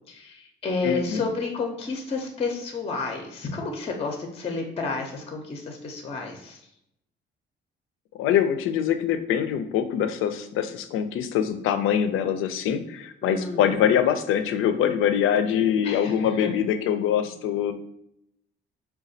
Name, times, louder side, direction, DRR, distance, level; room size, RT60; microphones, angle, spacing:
voice 1, 0.1-6.6 13.2-13.9 15.8-16.5, left 4 dB, 30° left, 2 dB, 0.5 m, -31 dB
voice 2, 0.8-1.3 8.2-17.7, left 9 dB, 80° left, 9 dB, 0.4 m, -24 dB
4.0 x 2.2 x 2.6 m, 0.79 s
cardioid pair, 110°, 21 cm